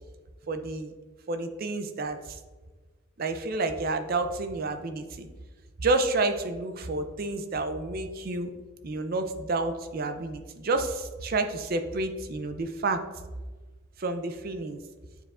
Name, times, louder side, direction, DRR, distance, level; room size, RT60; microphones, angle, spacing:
voice 1, 0.5-0.9 1.3-2.4 3.2-5.3 5.8-8.5 8.8-13.0 14.0-14.8, right 2 dB, 45° right, 8 dB, 0.4 m, -30 dB
9.0 x 4.9 x 2.4 m, 1.3 s
head